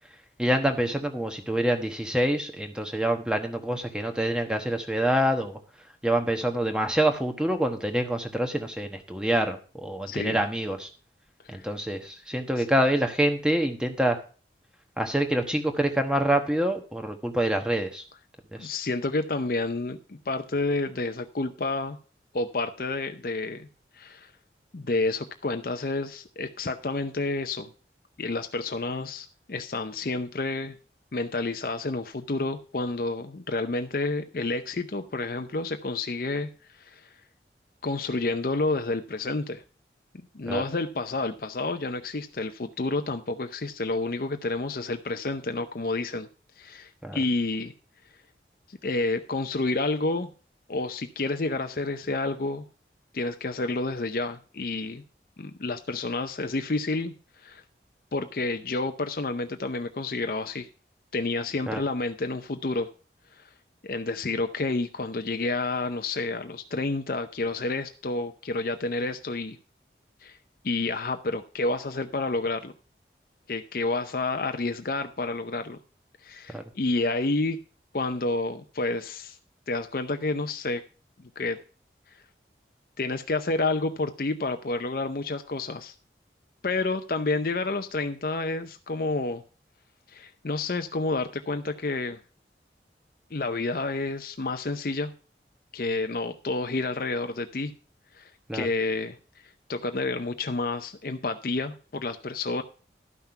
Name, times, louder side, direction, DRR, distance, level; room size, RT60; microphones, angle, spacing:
voice 1, 0.4-5.6 6.0-10.9 11.5-14.2 15.0-18.0 18.5-18.7 40.5-40.6 47.0-47.2 61.7-61.8 76.5-76.6 98.5-98.7, right 1 dB, 5° right, 5 dB, 1.1 m, -26 dB
voice 2, 10.1-10.4 11.4-11.6 18.6-22.0 22.3-23.7 24.0-24.3 24.7-27.7 28.2-30.8 31.1-36.5 36.8-37.1 37.8-39.6 40.3-46.3 46.6-47.7 48.7-50.3 50.7-52.6 53.1-55.0 55.4-57.1 57.4-57.6 58.1-60.7 61.1-62.9 63.8-69.6 70.2-70.4 70.6-72.7 73.5-75.8 76.2-77.6 77.9-79.4 79.7-80.8 81.4-81.6 83.0-85.9 86.6-89.4 90.1-92.2 93.3-95.1 95.7-97.7 98.1-99.2 99.7-102.6, left 3 dB, 55° left, 8 dB, 0.6 m, -29 dB
12.0 x 5.9 x 5.7 m, 0.38 s
head